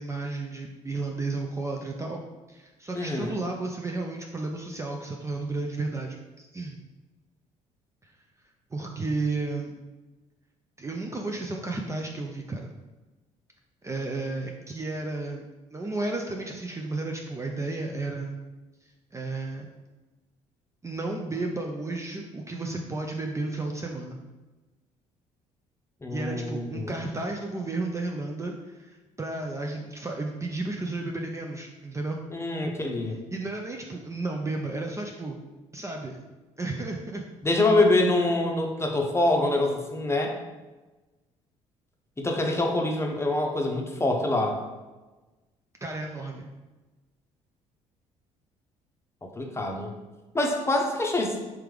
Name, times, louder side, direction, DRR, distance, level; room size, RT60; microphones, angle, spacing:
voice 1, 0.0-2.2 2.5-6.8 8.0-8.1 8.7-9.8 10.8-12.7 13.8-18.4 19.1-19.7 20.8-24.2 26.1-32.2 33.3-35.4 35.7-36.2 36.6-37.2 45.8-46.5, right 2 dB, 20° right, 1 dB, 0.5 m, -33 dB
voice 2, 2.9-3.3 26.0-26.9 32.3-33.2 37.4-40.4 42.2-44.6 49.2-49.9 50.3-51.4, left 2 dB, 15° left, 1 dB, 0.8 m, -25 dB
3.4 x 3.4 x 3.3 m, 1.2 s
hypercardioid pair, 55°, 16 cm